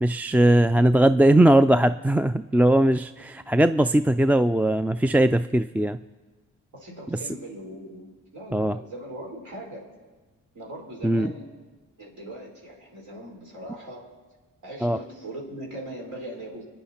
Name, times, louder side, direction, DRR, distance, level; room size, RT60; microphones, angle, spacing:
voice 1, 0.0-6.0 7.1-7.2 8.5-8.8 11.0-11.3 14.8-15.0, right 1 dB, 5° right, 12 dB, 0.3 m, -20 dB
voice 2, 6.7-9.9 10.5-11.5 12.0-14.1 14.6-16.6, right 1 dB, 70° right, -2 dB, 4.4 m, -40 dB
26.0 x 9.8 x 4.4 m, 1.3 s
cardioid pair, 65°, 31 cm